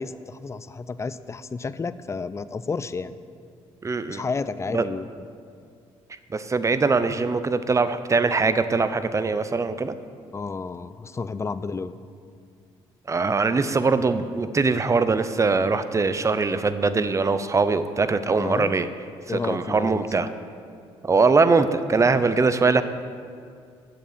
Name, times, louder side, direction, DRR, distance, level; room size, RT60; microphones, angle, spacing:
voice 1, 0.0-3.2 4.1-5.3 10.3-11.9 18.4-18.8 19.3-20.1, left 4 dB, 25° left, 15 dB, 0.4 m, -31 dB
voice 2, 3.8-4.2 4.7-4.9 6.3-9.9 13.1-18.9 19.3-20.3 21.0-22.8, right 4 dB, 25° right, 12 dB, 0.6 m, -22 dB
7.9 x 7.4 x 6.7 m, 2.3 s
supercardioid pair, 70°, 11 cm